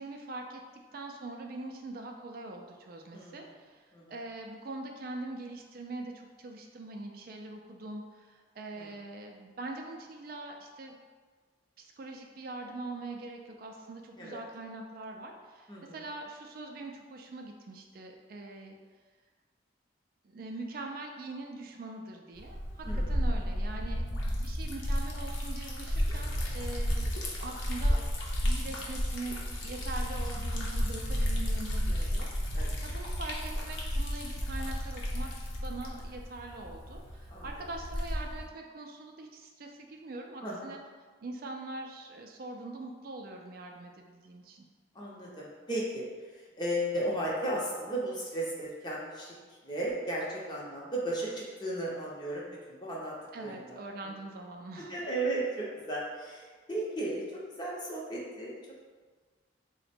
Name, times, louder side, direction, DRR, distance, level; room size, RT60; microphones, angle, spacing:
voice 1, 0.0-11.0 11.8-18.8 20.2-27.1 27.4-28.1 28.4-35.3 35.6-40.8 41.2-44.6 53.3-55.0, right 2 dB, 50° right, 2 dB, 0.3 m, -43 dB
voice 2, 3.1-3.5 3.9-4.1 8.8-8.9 14.2-14.4 15.7-16.0 22.8-23.1 31.9-32.1 32.5-32.8 37.3-37.6 40.4-40.7 44.9-53.1 53.4-53.8 54.0-54.1 54.9-58.5, right 1 dB, 25° left, -5 dB, 0.7 m, -35 dB
Liquid, 22.4-38.5, equal, 90° left, 0.7 m, -32 dB
3.8 x 2.1 x 4.2 m, 1.5 s
head